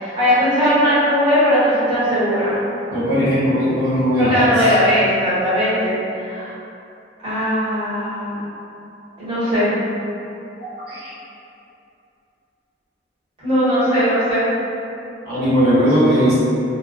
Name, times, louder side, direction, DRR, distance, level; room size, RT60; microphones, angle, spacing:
voice 1, 0.0-2.5 4.2-6.5 7.2-8.4 9.2-9.7 13.4-14.5, equal, 30° right, -14 dB, 1.2 m, -18 dB
voice 2, 2.9-4.6 10.9-11.1 15.2-16.3, equal, 60° right, -13 dB, 1.2 m, -17 dB
2.5 x 2.4 x 2.2 m, 2.7 s
head